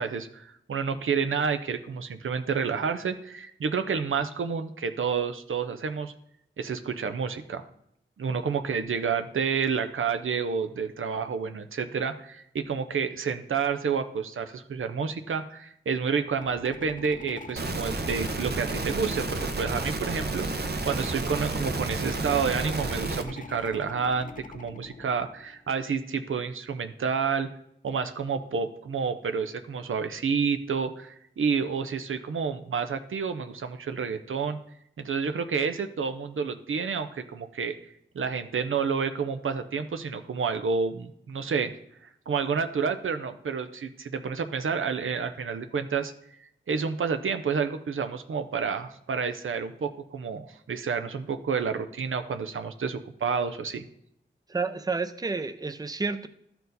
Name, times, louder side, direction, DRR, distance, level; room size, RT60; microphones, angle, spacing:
voice 1, 0.0-6.1 6.6-7.6 8.2-27.5 27.8-34.6 35.0-37.7 38.1-41.7 42.3-46.1 46.7-53.9, right 6 dB, 85° right, 8 dB, 0.6 m, -29 dB
sound 1, 16.3-25.7, left 3 dB, 40° left, 0.7 m, -44 dB
sound 2, 17.6-23.2, right 3 dB, 55° right, 0.8 m, -31 dB
voice 2, 54.5-56.3, right 4 dB, 20° right, 10 dB, 0.5 m, -30 dB
12.5 x 4.5 x 4.0 m, 0.73 s
wide cardioid pair, 70°, 20 cm